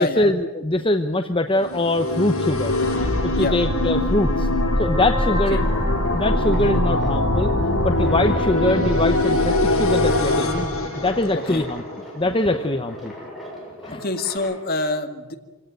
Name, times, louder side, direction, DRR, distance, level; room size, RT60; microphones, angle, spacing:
voice 1, 0.0-2.7 3.2-4.5 4.8-5.7 6.1-7.5 7.8-10.7 10.9-13.1 13.8-14.0, left 1 dB, 25° left, 6 dB, 0.9 m, -23 dB
sound 1, 1.6-11.8, left 1 dB, 75° left, 7.8 m, -22 dB
sound 2, 2.4-11.5, equal, 15° right, 4.1 m, -30 dB
voice 2, 5.3-5.6 11.3-11.7 13.9-15.4, left 2 dB, 45° left, 6 dB, 2.0 m, -26 dB
sound 3, 5.6-14.6, left 1 dB, ahead, 7.3 m, -39 dB
25.5 x 17.0 x 9.3 m, 1.2 s
head